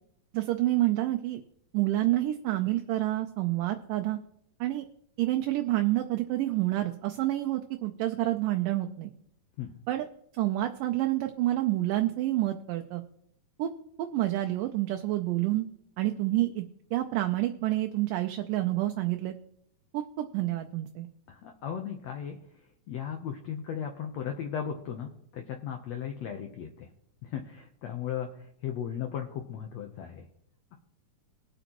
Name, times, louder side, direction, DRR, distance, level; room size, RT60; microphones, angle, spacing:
voice 1, 0.3-1.4 1.7-4.2 4.6-4.9 5.2-9.1 9.9-10.1 10.3-13.0 13.6-13.7 14.0-15.7 16.0-16.6 16.9-19.4 19.9-21.1, right 15 dB, 80° right, 5 dB, 2.1 m, -28 dB
voice 2, 21.3-22.4 22.9-26.9 27.2-30.3, left 8 dB, 75° left, 4 dB, 1.5 m, -36 dB
21.0 x 8.0 x 3.0 m, 0.75 s
omnidirectional pair, 4.3 m